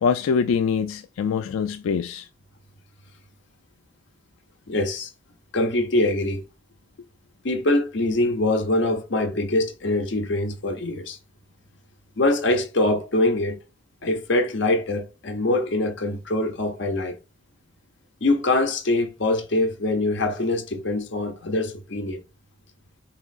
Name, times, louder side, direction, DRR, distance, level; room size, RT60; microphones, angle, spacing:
voice 1, 0.0-2.3, left 6 dB, 90° left, 0.3 m, -24 dB
voice 2, 4.7-5.1 5.5-6.4 7.4-11.2 12.2-13.6 14.0-17.2 18.2-22.2, left 2 dB, 60° left, 0.8 m, -23 dB
4.8 x 3.1 x 2.4 m
head